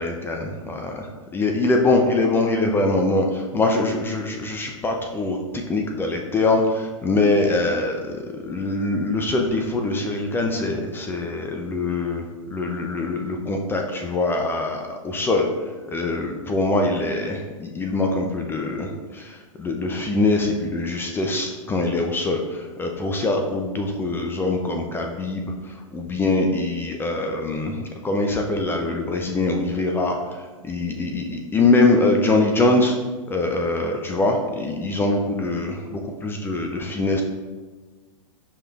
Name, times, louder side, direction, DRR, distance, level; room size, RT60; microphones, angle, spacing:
voice 1, 0.0-33.0 33.3-37.2, left 2 dB, 15° left, 2 dB, 0.3 m, -23 dB
5.4 x 3.2 x 2.3 m, 1.3 s
hypercardioid pair, 120°, 17 cm